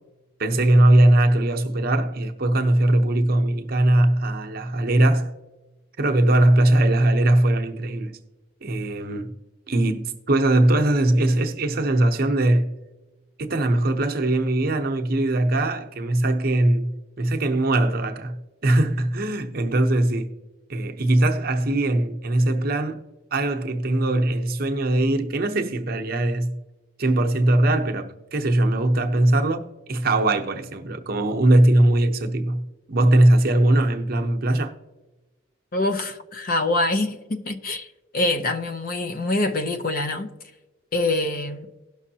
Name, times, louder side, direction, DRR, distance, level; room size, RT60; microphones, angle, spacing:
voice 1, 0.4-5.3 6.0-8.2 8.6-9.3 9.7-12.7 13.4-20.3 20.7-23.0 23.3-26.6 27.0-34.7, right 1 dB, 50° right, 0.8 m, -20 dB
voice 2, 35.7-40.3 40.9-41.7, left 2 dB, 45° left, 0.6 m, -25 dB
18.0 x 6.1 x 2.8 m
head